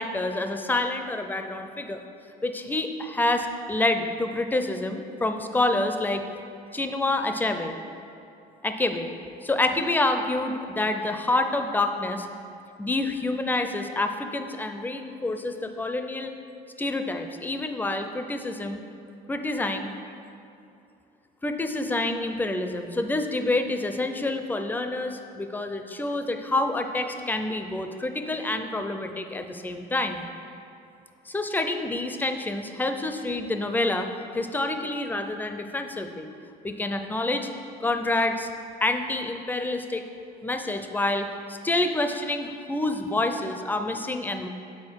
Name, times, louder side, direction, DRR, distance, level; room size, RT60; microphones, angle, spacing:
voice 1, 0.0-2.0 2.4-6.2 6.7-7.8 8.6-9.1 9.4-12.3 12.8-16.3 16.8-18.8 19.3-19.9 21.4-30.2 31.3-34.1 34.3-36.3 36.6-37.5 37.8-38.5 38.8-40.0 40.4-44.5, left 2 dB, 10° left, 6 dB, 0.4 m, -27 dB
8.6 x 4.1 x 4.5 m, 2.6 s
cardioid pair, 110°, 17 cm